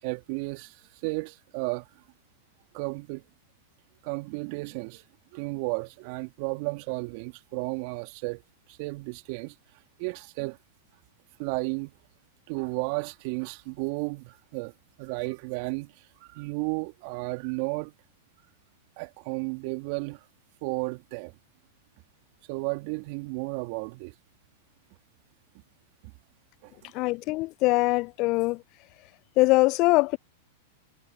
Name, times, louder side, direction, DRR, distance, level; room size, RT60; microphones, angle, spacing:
voice 1, 0.0-1.9 2.7-3.2 4.0-5.0 5.3-8.4 8.7-9.5 10.0-10.6 11.4-11.9 12.5-14.7 15.0-15.9 16.3-17.9 19.0-20.3 20.6-21.3 22.5-24.1 26.0-26.1 26.6-26.9, right 30 dB, 50° right, 2.7 m, -33 dB
voice 2, 26.9-28.6 29.4-30.2, left 23 dB, 45° left, 0.5 m, -22 dB
hypercardioid pair, 100°, 0 cm